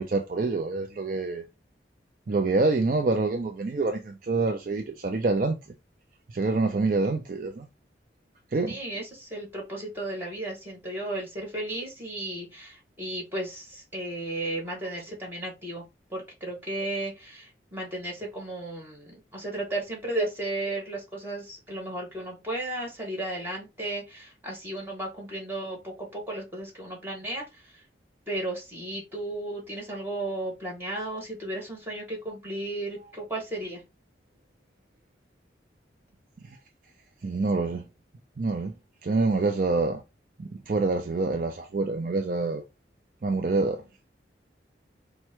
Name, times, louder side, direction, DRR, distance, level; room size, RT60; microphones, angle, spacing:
voice 1, 0.0-1.4 2.3-5.6 6.3-7.6 8.5-8.7 37.2-37.8 38.4-38.7 39.0-40.0 40.4-42.6 43.2-43.8, right 3 dB, 50° right, 0.5 m, -26 dB
voice 2, 8.7-15.8 16.1-27.7 28.3-33.8, right 1 dB, 10° right, 1.9 m, -34 dB
4.5 x 2.2 x 4.4 m
head